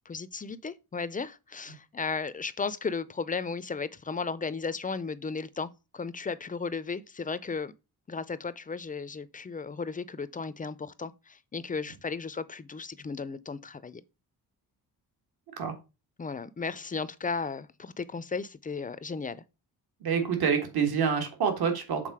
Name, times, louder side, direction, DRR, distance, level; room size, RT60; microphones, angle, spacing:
voice 1, 0.1-7.7 8.1-14.0 16.2-19.4, left 4 dB, 20° left, 0.4 m, -35 dB
voice 2, 20.0-22.1, right 6 dB, 70° right, 1.9 m, -27 dB
7.5 x 3.9 x 4.7 m
cardioid pair, 125°, 38 cm